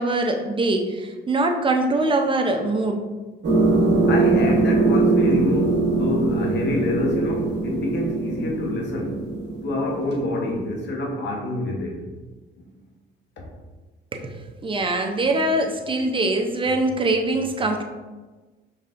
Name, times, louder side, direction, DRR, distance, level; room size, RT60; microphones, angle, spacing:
voice 1, 0.0-3.0 14.1-17.8, right 2 dB, 25° right, 3 dB, 0.6 m, -23 dB
sound 1, 3.4-10.6, right 3 dB, 60° right, 1.2 m, -22 dB
voice 2, 4.1-9.2 9.6-12.0 12.5-12.6 13.4-13.5, left 2 dB, 65° left, 0 dB, 1.0 m, -27 dB
5.5 x 3.2 x 2.5 m, 1.3 s
cardioid pair, 90°, 20 cm